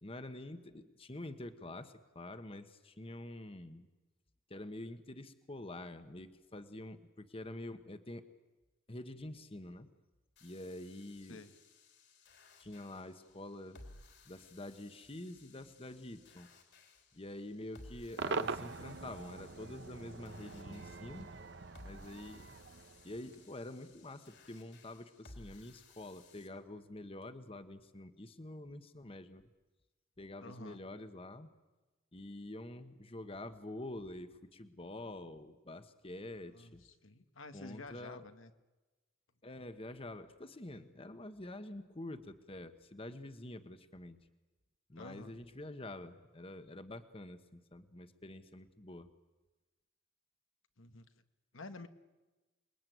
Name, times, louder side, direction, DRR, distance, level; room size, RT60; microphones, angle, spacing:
voice 1, 0.0-3.9 4.5-8.3 8.9-9.9 10.4-11.4 12.6-13.8 14.2-16.5 17.1-21.3 21.8-22.6 23.0-29.4 30.2-31.5 32.1-36.8 37.5-38.2 39.4-44.3 44.9-49.1, left 1 dB, 30° left, 10 dB, 1.3 m, -47 dB
sound 1, 10.4-26.5, left 2 dB, 60° left, 3.4 m, -59 dB
Cheering / Crowd / Fireworks, 18.2-23.5, right 4 dB, 60° right, 0.9 m, -43 dB
voice 2, 30.4-30.8 36.5-38.5 45.0-45.3 50.8-51.1 51.5-51.9, left 2 dB, 80° left, 8 dB, 1.6 m, -50 dB
28.5 x 21.0 x 9.3 m, 1.1 s
head